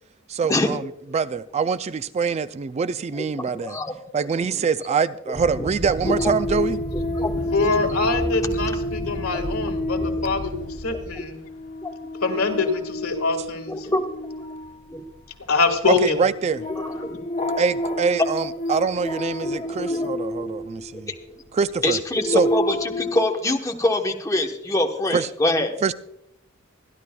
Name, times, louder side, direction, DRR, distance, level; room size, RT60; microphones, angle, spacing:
voice 1, 0.3-0.8 1.1-3.8 4.1-6.8 15.9-16.7 17.6-21.1 21.5-22.0 22.3-22.5 25.1-25.3 25.8-25.9, right 5 dB, 30° right, 0.3 m, -24 dB
voice 2, 3.2-3.9 4.3-4.6 5.6-5.7 6.2-6.3 7.2-7.7 10.0-10.1 10.9-11.2 11.8-11.9 13.7-14.0 14.9-15.0 16.8-17.2 19.4-20.1 21.8-25.7, left 2 dB, 15° left, 1.0 m, -25 dB
sound 1, 5.3-11.2, equal, 75° right, 2.3 m, -33 dB
sound 2, 6.0-21.2 21.8-23.1, left 1 dB, 35° left, 1.6 m, -30 dB
voice 3, 7.5-11.4 12.2-13.9 15.5-16.1, left 4 dB, 85° left, 1.7 m, -24 dB
25.0 x 11.0 x 2.3 m
head